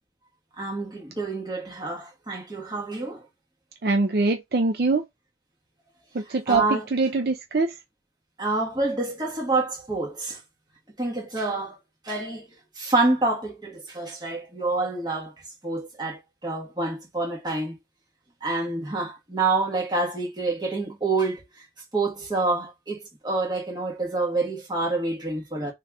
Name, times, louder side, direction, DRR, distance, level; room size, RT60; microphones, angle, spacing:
voice 1, 0.6-3.2 6.5-6.9 8.4-10.4 11.0-11.8 12.0-12.5 12.8-15.3 15.6-17.7 18.4-21.4 21.9-25.7, right 3 dB, 25° right, 1.6 m, -27 dB
voice 2, 3.8-5.0 6.1-6.6 6.9-7.7, right 3 dB, 60° right, 0.5 m, -23 dB
3.4 x 3.1 x 3.6 m
head